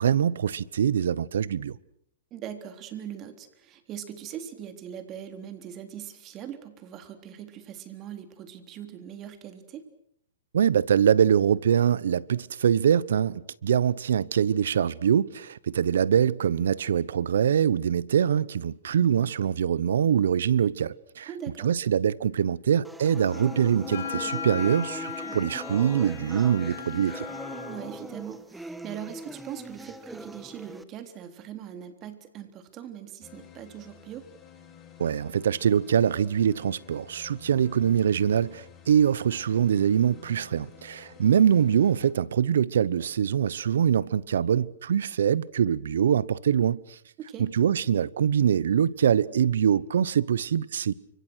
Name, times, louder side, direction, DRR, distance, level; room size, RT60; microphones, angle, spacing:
voice 1, 0.0-1.8 10.5-21.3 21.6-27.3 35.0-47.0 47.4-50.9, right 8 dB, 75° right, 1.0 m, -24 dB
voice 2, 2.3-9.8 21.3-21.7 27.7-34.3 47.2-47.5, right 9 dB, 30° right, 3.6 m, -41 dB
sound 1, 22.8-30.8, right 1 dB, 5° right, 1.3 m, -41 dB
Wind instrument woodwind instrument, 23.1-28.0, left 8 dB, 70° left, 7.0 m, -37 dB
sound 2, 33.2-42.1, left 9 dB, 20° left, 4.6 m, -52 dB
29.5 x 26.0 x 6.5 m
hypercardioid pair, 140°, 0 cm